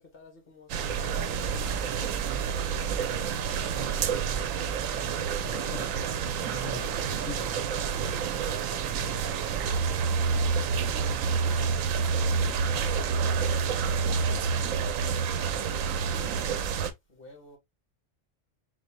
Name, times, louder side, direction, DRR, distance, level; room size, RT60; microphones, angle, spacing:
voice 1, 0.0-2.0 2.5-4.6 5.2-6.6 8.6-14.1 17.1-17.6, left 3 dB, 45° left, 2.1 m, -52 dB
sound 1, 0.7-16.9, right 6 dB, 85° right, 1.0 m, -28 dB
voice 2, 5.4-8.3, left 5 dB, 70° left, 1.3 m, -43 dB
4.1 x 3.5 x 2.7 m
omnidirectional pair, 1.4 m